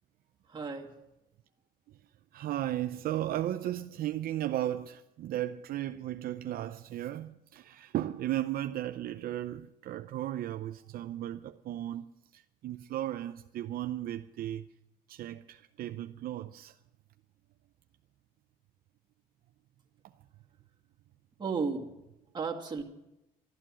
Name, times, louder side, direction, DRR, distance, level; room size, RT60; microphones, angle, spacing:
voice 1, 0.5-0.9 21.4-21.9 22.3-22.8, right 5 dB, 25° right, 2.2 m, -34 dB
voice 2, 2.3-12.1 12.3-14.6 15.1-16.8, right 13 dB, 60° right, 0.6 m, -35 dB
12.5 x 12.5 x 7.5 m
cardioid pair, 110°, 17 cm